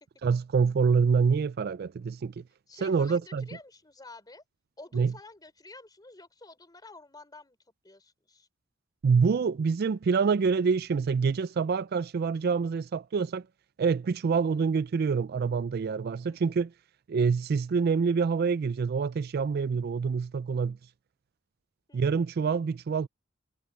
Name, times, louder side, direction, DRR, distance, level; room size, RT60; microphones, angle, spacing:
voice 1, 0.2-2.4 2.8-3.5 4.9-5.1 9.0-13.4 13.8-16.7 17.1-20.8 21.9-23.1, right 5 dB, 55° right, 0.4 m, -26 dB
voice 2, 2.7-4.4 4.8-7.6 7.8-8.5 14.4-14.6 16.3-16.5 21.9-22.2, left 3 dB, 20° left, 3.7 m, -50 dB
head